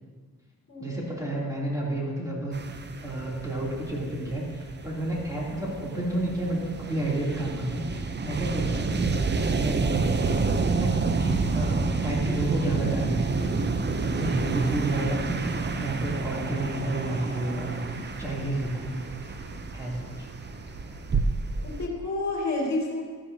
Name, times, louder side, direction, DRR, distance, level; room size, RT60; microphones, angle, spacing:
voice 1, 0.8-2.5 3.0-9.1 9.4-10.9 11.2-19.0 19.7-20.3, right 1 dB, 10° right, -5 dB, 3.0 m, -31 dB
sound 1, 2.5-21.9, right 4 dB, 30° right, 0.6 m, -29 dB
sound 2, 5.5-21.2, right 1 dB, 85° right, 3.0 m, -45 dB
voice 2, 21.5-23.0, left 2 dB, 55° left, -2 dB, 2.3 m, -30 dB
13.5 x 10.0 x 2.8 m, 1.5 s
cardioid pair, 85°, 33 cm